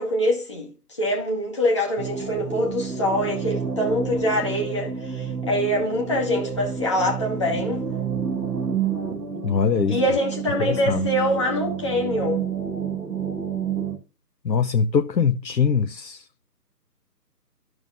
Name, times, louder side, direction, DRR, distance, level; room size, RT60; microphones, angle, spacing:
voice 1, 0.0-7.8 9.9-12.4, left 1 dB, 15° left, 1.4 m, -24 dB
sound 1, 2.0-14.0, right 7 dB, 85° right, 2.1 m, -29 dB
voice 2, 9.4-10.0 10.6-11.1 14.4-16.3, left 6 dB, 80° left, 0.7 m, -22 dB
14.0 x 6.2 x 2.4 m
figure-of-eight pair, 155°, 50 cm